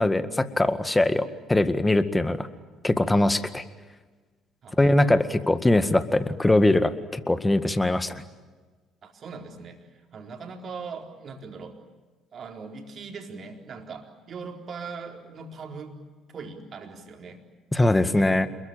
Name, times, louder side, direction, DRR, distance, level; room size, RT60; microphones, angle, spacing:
voice 1, 0.0-2.5 2.8-3.6 4.8-8.2 17.7-18.5, left 2 dB, 15° left, 12 dB, 1.9 m, -22 dB
voice 2, 4.6-5.2 9.0-11.8 12.3-16.0 16.3-17.4 18.1-18.5, right 5 dB, 45° right, 3 dB, 4.2 m, -40 dB
28.5 x 21.5 x 9.0 m, 1.4 s
figure-of-eight pair, 50°, 0 cm